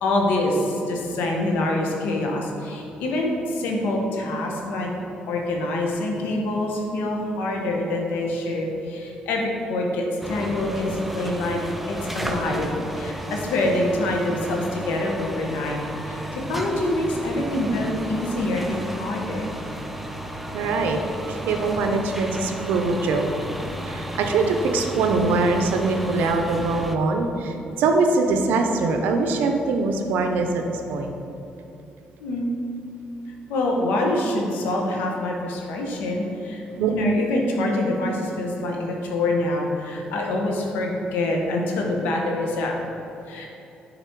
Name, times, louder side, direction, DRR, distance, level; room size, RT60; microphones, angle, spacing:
voice 1, 0.0-4.9 5.3-11.6 11.9-15.8 16.1-19.5 32.2-32.5 33.5-36.6 36.9-42.7 43.3-43.5, left 1 dB, 90° left, 0 dB, 1.0 m, -25 dB
sound 1, 10.2-27.0, right 1 dB, 5° right, 0.5 m, -33 dB
voice 2, 20.5-21.0 21.3-23.3 23.9-31.1 36.7-37.0, right 3 dB, 85° right, 4 dB, 0.6 m, -23 dB
6.7 x 4.1 x 4.5 m, 2.9 s
cardioid pair, 95°, 3 cm